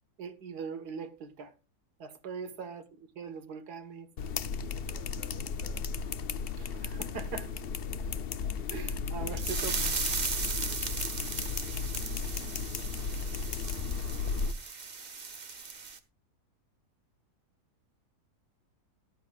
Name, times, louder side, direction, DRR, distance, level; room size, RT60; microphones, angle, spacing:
voice 1, 0.2-1.5 2.0-4.1 6.6-7.5 8.7-9.9, right 5 dB, 80° right, 1.8 m, -41 dB
sound 1, 4.2-14.5, left 5 dB, 55° left, 0.7 m, -35 dB
voice 2, 4.9-5.9 11.8-13.1, equal, 10° left, 3.7 m, -55 dB
sound 2, 9.4-16.0, right 5 dB, 30° right, 1.0 m, -37 dB
18.0 x 11.5 x 2.4 m
omnidirectional pair, 1.7 m